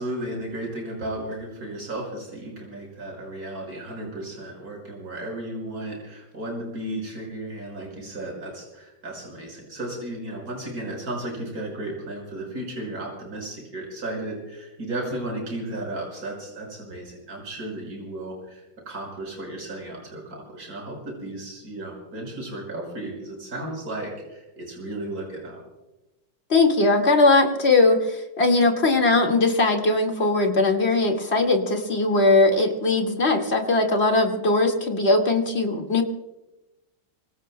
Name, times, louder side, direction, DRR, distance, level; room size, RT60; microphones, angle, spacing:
voice 1, 0.0-25.6, right 1 dB, 50° right, -1 dB, 6.2 m, -34 dB
voice 2, 26.5-36.0, left 2 dB, 35° left, 2 dB, 2.2 m, -20 dB
26.0 x 25.0 x 2.2 m, 1.0 s
omnidirectional pair, 2.1 m